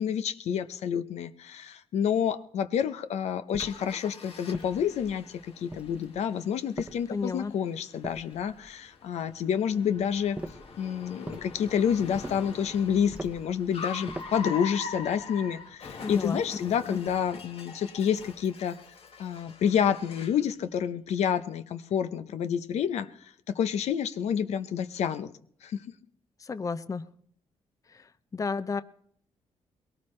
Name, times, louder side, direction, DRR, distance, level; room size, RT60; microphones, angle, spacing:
voice 1, 0.0-5.2 5.6-10.4 10.8-18.8 19.2-23.1 23.5-25.3 25.6-25.8, left 8 dB, 80° left, 11 dB, 0.8 m, -29 dB
sound 1, 3.5-3.9 4.5-5.2 5.7-6.2 6.8-7.4 8.0-8.7 10.4-10.7 11.3-11.5 12.1-12.5 13.1-13.5 14.1-14.5, right 1 dB, 10° right, 0.9 m, -41 dB
Car, 3.6-20.5, left 4 dB, 60° left, 1.6 m, -44 dB
voice 2, 7.1-7.5 16.0-16.4 16.9-17.0 26.5-27.0 28.3-28.8, left 4 dB, 30° left, 13 dB, 0.6 m, -31 dB
21.0 x 18.0 x 3.2 m, 0.64 s
cardioid pair, 80°, 11 cm